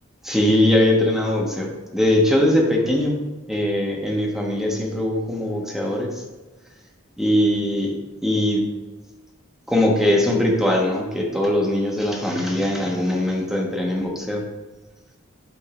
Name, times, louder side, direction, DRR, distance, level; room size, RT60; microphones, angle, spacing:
voice 1, 0.2-1.7 1.9-3.2 3.5-6.1 7.2-7.9 8.2-8.6 9.7-14.4, left 1 dB, ahead, -1 dB, 1.1 m, -21 dB
8.7 x 3.7 x 4.8 m, 1.1 s
head